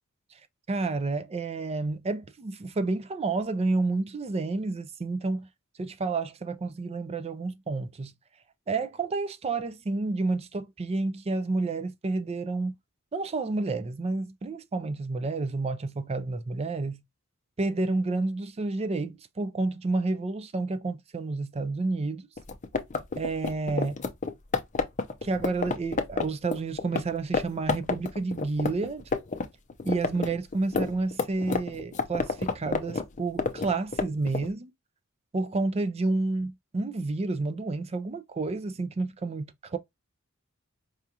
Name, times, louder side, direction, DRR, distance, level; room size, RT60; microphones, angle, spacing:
voice 1, 0.7-5.5 5.8-8.1 8.7-12.7 13.1-17.0 17.6-22.3 23.2-24.0 25.2-29.1 29.9-34.7 35.3-39.8, right 3 dB, 30° right, 0.4 m, -30 dB
sound 1, 22.4-27.0 27.3-27.4 27.7-29.4 29.7-34.5, left 4 dB, 35° left, 0.6 m, -28 dB
4.8 x 2.3 x 2.8 m
head